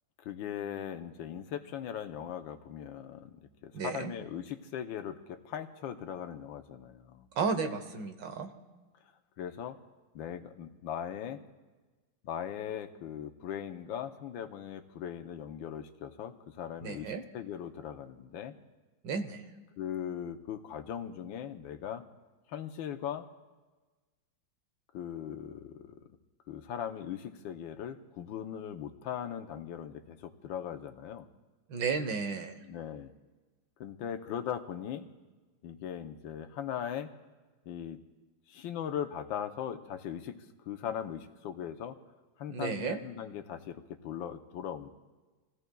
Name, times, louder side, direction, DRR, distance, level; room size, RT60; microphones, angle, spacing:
voice 1, 0.2-7.3 9.4-9.8 10.1-11.4 12.2-18.5 19.8-22.0 22.5-23.3 24.9-26.0 26.5-31.3 32.6-33.1 33.8-35.1 35.6-37.1 37.7-38.0 38.5-42.0 42.4-44.9, left 9 dB, 85° left, 7 dB, 1.5 m, -39 dB
voice 2, 3.7-4.1 7.4-8.5 16.8-17.2 19.0-19.4 31.7-32.5 42.5-43.0, right 5 dB, 70° right, 7 dB, 1.7 m, -33 dB
27.0 x 16.5 x 2.3 m, 1.3 s
omnidirectional pair, 2.1 m